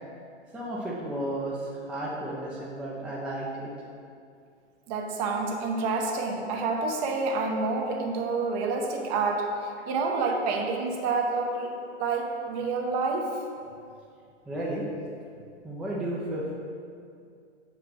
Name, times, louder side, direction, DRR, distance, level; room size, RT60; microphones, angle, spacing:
voice 1, 0.5-3.7 14.5-14.8 15.6-16.5, right 1 dB, 5° right, -5 dB, 0.6 m, -33 dB
voice 2, 4.9-9.5 9.9-11.7 12.0-13.3, right 4 dB, 35° right, 2 dB, 0.8 m, -28 dB
4.9 x 4.9 x 6.0 m, 2.4 s
hypercardioid pair, 115°, 35 cm